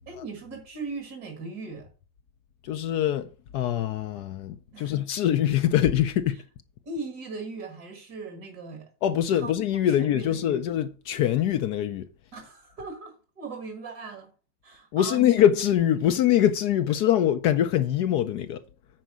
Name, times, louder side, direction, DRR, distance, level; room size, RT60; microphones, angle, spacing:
voice 1, 0.1-1.9 4.7-4.9 6.9-8.9 9.3-9.5 9.9-10.6 12.3-14.3 14.6-15.4, right 3 dB, 65° right, 2.3 m, -38 dB
voice 2, 2.6-6.4 9.0-12.1 14.9-18.6, left 11 dB, 75° left, 1.2 m, -23 dB
9.3 x 4.6 x 6.1 m
omnidirectional pair, 1.8 m